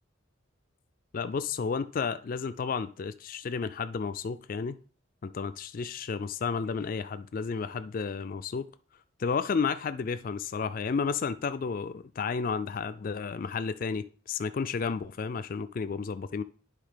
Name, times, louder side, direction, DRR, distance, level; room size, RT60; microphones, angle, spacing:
voice 1, 1.1-4.8 5.2-8.7 9.2-16.4, left 5 dB, 45° left, 0.3 m, -32 dB
10.0 x 3.7 x 5.0 m
head